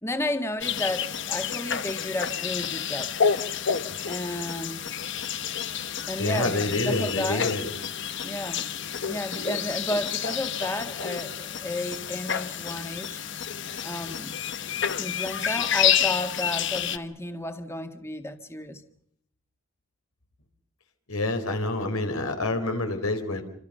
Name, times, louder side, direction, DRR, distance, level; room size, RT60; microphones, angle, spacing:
voice 1, 0.0-3.1 4.1-4.8 6.1-7.5 8.2-8.6 9.1-13.2 13.8-14.4 15.0-18.8, left 1 dB, 10° left, 1.7 m, -32 dB
sound 1, 0.6-17.0, left 8 dB, 55° left, 1.1 m, -29 dB
voice 2, 6.2-7.7 21.1-23.4, left 2 dB, 90° left, 4.3 m, -27 dB
28.0 x 26.0 x 5.6 m
head